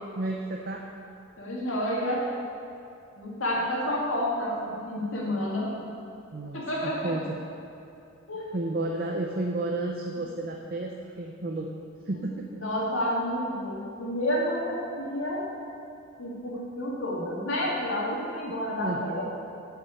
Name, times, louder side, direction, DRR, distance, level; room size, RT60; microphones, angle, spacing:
voice 1, 0.2-0.9 6.3-7.4 8.5-11.7 12.1-12.6 18.8-19.0, right 2 dB, 45° right, 1 dB, 0.6 m, -32 dB
voice 2, 1.4-2.2 3.1-5.7 6.5-7.1 8.3-8.5 12.5-15.4 16.2-19.3, equal, 70° left, -4 dB, 2.5 m, -30 dB
8.5 x 7.5 x 6.9 m, 2.7 s
head